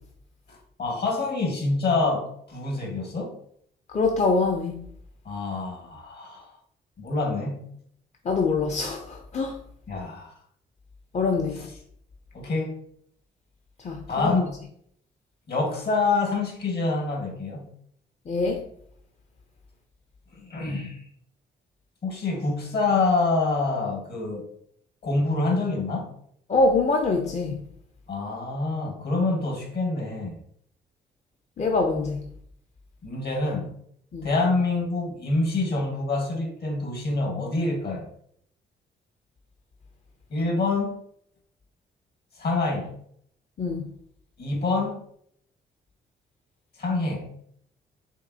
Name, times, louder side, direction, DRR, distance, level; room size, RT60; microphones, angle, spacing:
voice 1, 0.5-3.4 5.2-6.5 7.0-7.8 9.9-10.3 12.3-12.8 14.1-14.5 15.5-17.7 20.3-21.0 22.0-24.5 25.0-26.1 28.1-30.4 33.0-33.7 34.2-38.1 40.3-41.0 42.4-43.0 44.4-45.0 46.8-47.4, left 3 dB, 60° left, 1.4 m, -26 dB
voice 2, 3.9-4.9 8.3-9.6 11.1-11.7 13.8-14.4 18.3-18.6 26.5-27.6 31.6-32.2 34.1-34.3 43.6-43.9, left 3 dB, 40° left, 0.5 m, -24 dB
5.2 x 2.7 x 2.7 m
cardioid pair, 75°, 19 cm